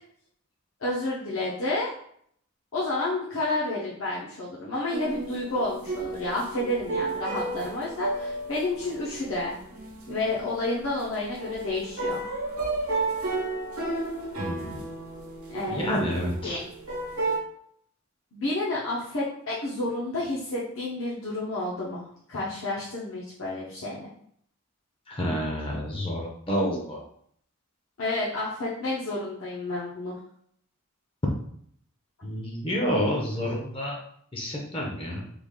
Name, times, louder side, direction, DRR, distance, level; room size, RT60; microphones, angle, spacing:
voice 1, 0.8-1.9 2.7-9.6 10.1-12.3 15.5-15.9 16.4-16.6 18.3-24.1 28.0-30.1, left 2 dB, 60° left, -7 dB, 0.7 m, -30 dB
sound 1, 4.9-17.4, right 2 dB, 75° right, 0.9 m, -33 dB
voice 2, 14.4-14.8 15.7-16.6 25.1-27.0 32.2-34.0 34.3-35.2, equal, 25° left, -1 dB, 0.6 m, -29 dB
3.3 x 2.3 x 3.6 m, 0.65 s
head